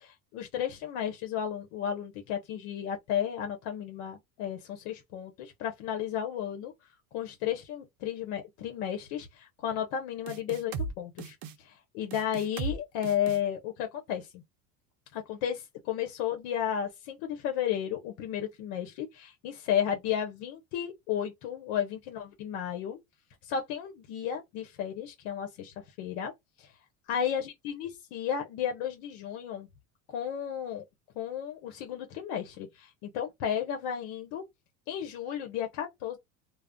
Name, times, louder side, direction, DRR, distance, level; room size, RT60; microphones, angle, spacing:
voice 1, 0.0-6.7 7.1-14.4 15.1-23.0 23.4-26.3 26.6-26.7 27.1-29.7 30.1-30.8 31.2-34.4 34.9-36.2, left 9 dB, 65° left, 0.8 m, -33 dB
sound 1, 10.3-10.9 11.2-11.5 12.1-12.8 13.0-13.4, right 4 dB, 50° right, 0.6 m, -36 dB
2.3 x 2.0 x 3.5 m
supercardioid pair, 105°, 45 cm